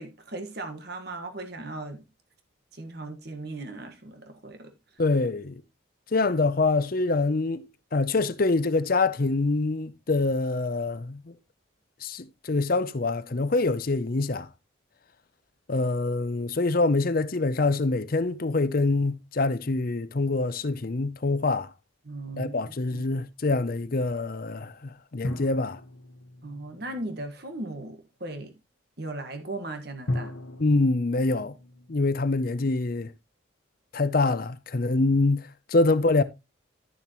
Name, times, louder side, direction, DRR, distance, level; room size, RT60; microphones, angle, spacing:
voice 1, 0.0-2.0 2.7-4.7 22.0-23.1 26.4-28.5 29.0-30.3, right 2 dB, 55° right, 1.5 m, -37 dB
voice 2, 5.0-5.6 6.1-7.7 7.9-11.3 12.0-14.5 15.7-21.7 22.3-25.8 30.6-31.6 31.9-33.1 33.9-36.2, left 3 dB, 45° left, 0.6 m, -25 dB
sound 1, 23.4-23.5 25.2-27.6 30.1-33.1, left 1 dB, 70° left, 1.3 m, -37 dB
11.5 x 7.1 x 3.0 m
head